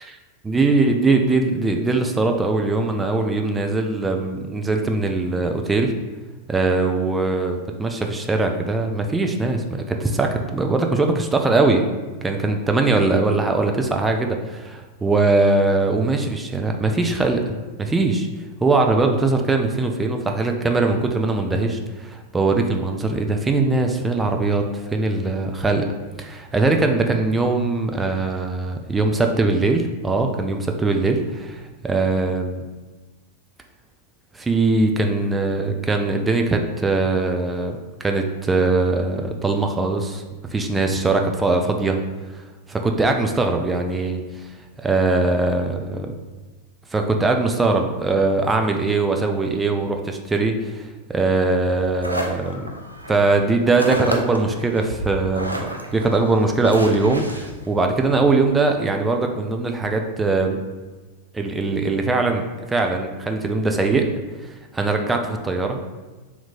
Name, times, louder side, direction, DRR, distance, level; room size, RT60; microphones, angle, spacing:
voice 1, 0.5-5.9 6.5-11.9 12.2-18.3 18.6-25.9 26.2-32.6 34.3-40.2 40.5-42.0 42.7-44.5 44.8-46.1 46.9-50.9 51.1-52.7 53.1-60.6 61.3-62.4 62.7-64.1 64.4-65.8, right 3 dB, 10° right, 4 dB, 0.3 m, -21 dB
sound 1, 51.6-58.3, right 1 dB, 85° right, 0.4 m, -32 dB
2.9 x 2.7 x 4.1 m, 1.2 s
figure-of-eight pair, 90°, 0 cm